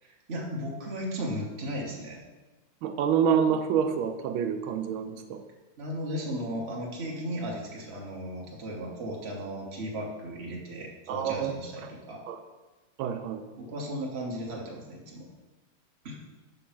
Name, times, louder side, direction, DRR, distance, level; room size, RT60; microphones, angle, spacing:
voice 1, 0.0-2.2 5.8-12.2 13.6-15.3 16.0-16.2, equal, 35° right, -2 dB, 1.3 m, -36 dB
voice 2, 2.8-5.4 11.1-11.5 11.8-11.9 12.3-12.4 13.0-13.4, right 7 dB, 85° right, 7 dB, 1.4 m, -27 dB
6.5 x 3.8 x 5.8 m, 1.2 s
omnidirectional pair, 2.2 m